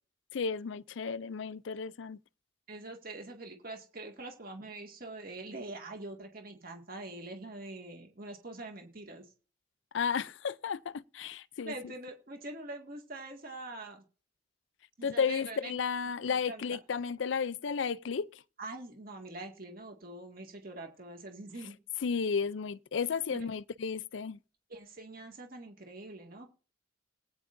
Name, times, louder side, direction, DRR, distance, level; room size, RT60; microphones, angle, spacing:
voice 1, 0.3-2.2 9.9-11.7 15.0-18.4 22.0-24.4, left 6 dB, 75° left, 0.5 m, -33 dB
voice 2, 2.7-9.3 11.6-14.0 15.0-15.8 16.3-16.6 18.6-21.8 23.3-23.5 24.7-26.5, right 2 dB, 50° right, 2.1 m, -44 dB
19.5 x 9.3 x 2.6 m
head